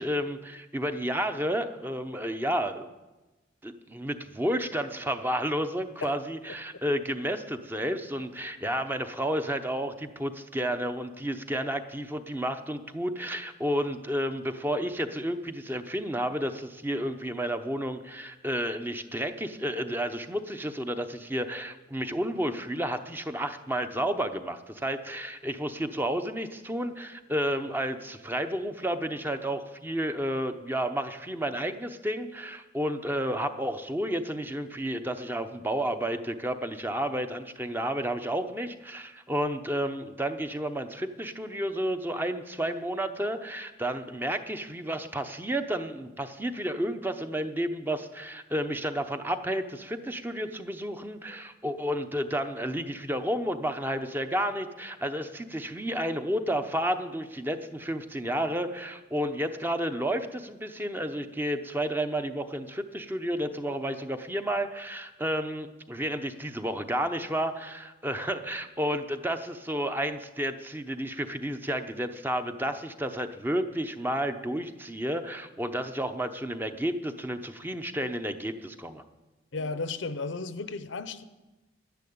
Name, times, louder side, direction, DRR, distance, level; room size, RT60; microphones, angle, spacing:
voice 1, 0.0-2.9 3.6-79.0, equal, 10° right, 0.7 m, -31 dB
voice 2, 79.5-81.2, left 3 dB, 80° left, 0.8 m, -34 dB
11.5 x 10.5 x 8.6 m
head